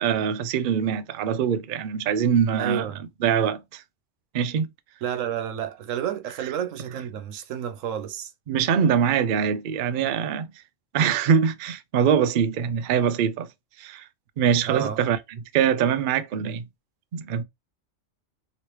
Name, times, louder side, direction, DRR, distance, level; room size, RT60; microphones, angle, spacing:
voice 1, 0.0-2.9 3.2-3.8 4.3-4.7 8.5-10.5 10.9-13.5 13.8-14.0 14.4-16.6 17.1-17.4, right 7 dB, 65° right, 0.5 m, -23 dB
voice 2, 2.6-3.0 5.0-8.3 14.7-15.0, right 9 dB, 85° right, 1.0 m, -30 dB
3.1 x 3.0 x 3.0 m
omnidirectional pair, 1.3 m